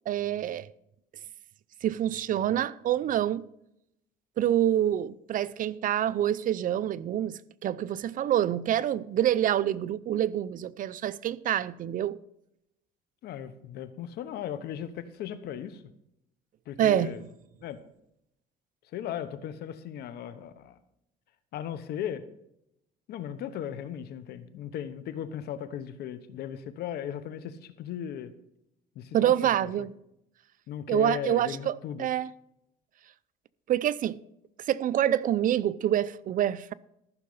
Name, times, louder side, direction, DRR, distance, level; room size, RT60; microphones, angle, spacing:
voice 1, 0.1-0.7 1.8-3.5 4.4-12.2 16.8-17.1 29.1-29.9 30.9-32.3 33.7-34.2 34.7-36.7, right 11 dB, 55° right, 0.5 m, -26 dB
voice 2, 13.2-15.8 16.7-17.2 17.6-17.8 18.9-20.8 21.5-22.2 23.1-28.3 28.9-29.9 30.7-32.1, left 9 dB, 75° left, 1.1 m, -37 dB
14.0 x 6.4 x 5.6 m
cardioid pair, 110°, 17 cm